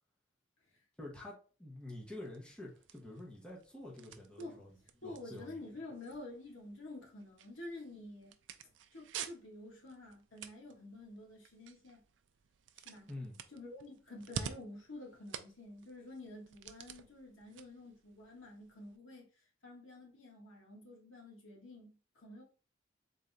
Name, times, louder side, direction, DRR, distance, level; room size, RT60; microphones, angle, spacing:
voice 1, 1.0-4.7 5.0-5.6 13.1-13.4, left 1 dB, 5° left, 0.9 m, -48 dB
sound 1, 2.0-19.0, right 7 dB, 70° right, 0.4 m, -51 dB
voice 2, 4.4-8.3 8.9-12.0 12.7-13.1 13.5-22.4, left 2 dB, 85° left, 1.4 m, -50 dB
3.9 x 2.7 x 3.3 m
head